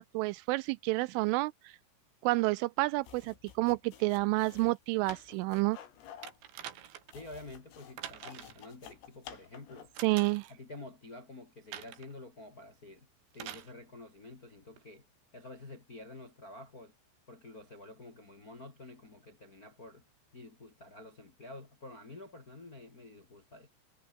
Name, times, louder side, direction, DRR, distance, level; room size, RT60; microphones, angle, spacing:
voice 1, 0.0-1.7 2.2-5.8 10.0-10.5, right 22 dB, 85° right, 3.0 m, -29 dB
sound 1, 3.0-10.0, left 10 dB, 85° left, 5.7 m, -52 dB
sound 2, 6.2-7.2 8.0-8.7 9.9-10.5 11.7-12.1 13.3-13.7 14.8-14.9, right 11 dB, 70° right, 4.4 m, -45 dB
voice 2, 7.1-9.9 10.5-13.1 13.3-15.0 15.3-16.9 17.3-20.1 20.3-23.7, left 2 dB, 35° left, 1.5 m, -49 dB
omnidirectional pair, 5.8 m